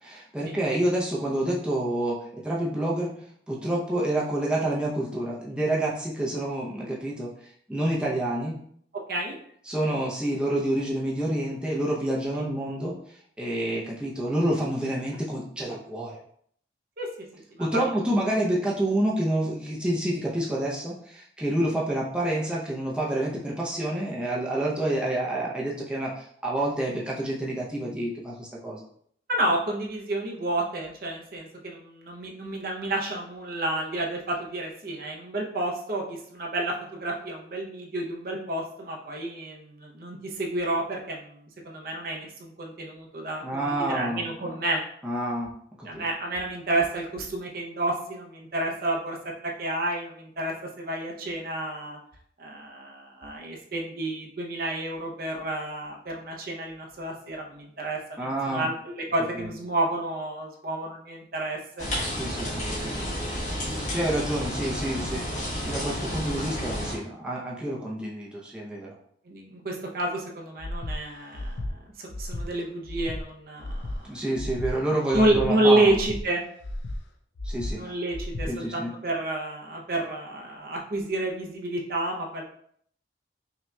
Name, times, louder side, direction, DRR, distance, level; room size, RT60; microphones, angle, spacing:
voice 1, 0.0-3.1 3.5-7.3 7.7-8.6 9.7-12.9 13.4-16.1 17.6-28.8 43.4-44.5 45.0-45.5 45.8-46.0 58.2-58.7 59.3-59.5 62.2-63.4 63.9-69.0 74.0-75.9 77.4-77.9 78.5-78.9, right 1 dB, 5° right, -5 dB, 0.6 m, -28 dB
voice 2, 17.5-17.8 29.3-44.8 45.8-49.2 49.4-52.0 52.4-61.9 69.3-71.6 72.0-74.1 75.1-76.4 77.7-82.4, right 1 dB, 50° right, 0 dB, 0.6 m, -30 dB
sound 1, 61.8-67.0, equal, 40° left, 1.4 m, -31 dB
Breathing, 70.6-71.0 71.3-71.7 72.1-72.5 72.8-73.2 73.6-74.0 74.3-74.7 75.1-75.5 75.8-76.2 76.6-77.0 77.4-77.7 78.1-78.5, left 1 dB, 75° left, 0.5 m, -33 dB
5.7 x 2.8 x 2.2 m, 0.64 s
head